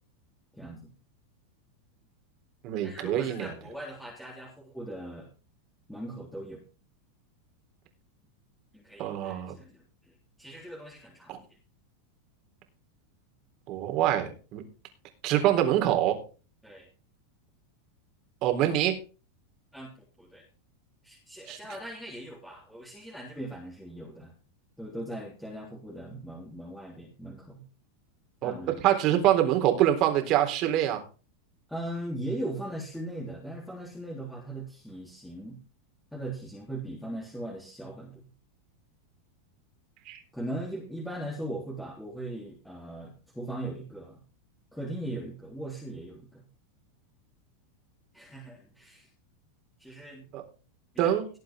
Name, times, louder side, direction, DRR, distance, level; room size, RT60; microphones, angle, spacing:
voice 1, 0.6-0.9 2.8-5.3 5.9-6.6 8.7-10.1 10.4-11.3 16.6-16.9 19.7-19.9 20.2-20.4 21.0-24.3 24.8-27.6 28.4-29.2 31.7-35.6 36.1-38.3 40.3-44.2 44.7-46.4 48.1-49.1 49.8-50.3 51.0-51.1, right 1 dB, 5° left, -3 dB, 3.6 m, -39 dB
voice 2, 2.6-3.5 9.0-9.5 11.3-11.4 13.7-14.6 15.2-16.2 18.4-19.0 21.5-21.6 28.4-28.5 28.8-31.0 40.1-40.2 50.3-50.4 51.0-51.2, right 12 dB, 50° right, 5 dB, 3.9 m, -25 dB
19.0 x 7.8 x 3.7 m, 0.35 s
hypercardioid pair, 105°, 0 cm